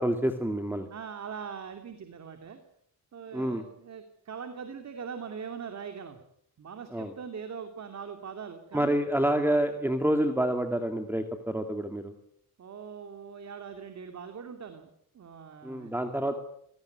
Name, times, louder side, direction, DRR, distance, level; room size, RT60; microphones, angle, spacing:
voice 1, 0.0-0.9 3.3-3.6 6.9-7.1 8.7-12.1 15.6-16.4, right 1 dB, 5° right, 6 dB, 2.1 m, -28 dB
voice 2, 0.9-2.6 3.1-6.2 6.6-9.0 12.6-14.9 15.1-16.0, right 6 dB, 55° right, 6 dB, 2.6 m, -41 dB
26.5 x 18.0 x 9.4 m, 0.72 s
cardioid pair, 130°, 33 cm